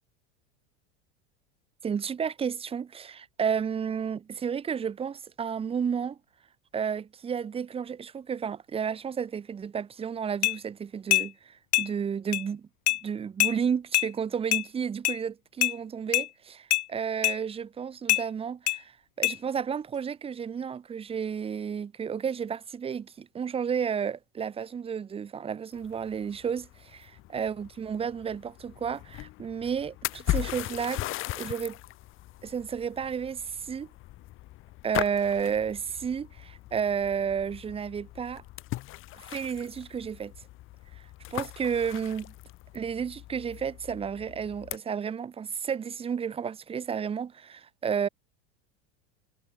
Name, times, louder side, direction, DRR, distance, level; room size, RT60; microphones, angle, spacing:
voice 1, 1.8-6.2 6.7-12.7 13.0-31.0 31.4-31.8 32.4-33.9 34.8-38.4 39.1-40.3 41.0-41.1 41.3-42.3 42.7-48.1, right 7 dB, 15° right, 3.4 m, -32 dB
sound 1, 10.4-10.6 11.1-11.3 11.7-11.9 12.3-12.4 12.9-13.0 13.4-13.5 13.9-14.1 14.5-14.6 15.0-15.2 15.6-15.7 16.1-16.3 16.7-16.8 17.2-17.4 18.1-18.2 18.7-18.8 19.2-19.4, left 20 dB, 70° left, 2.7 m, -24 dB
sound 2, 25.7-44.8, left 17 dB, 35° left, 7.4 m, -39 dB
supercardioid pair, 165°, 34 cm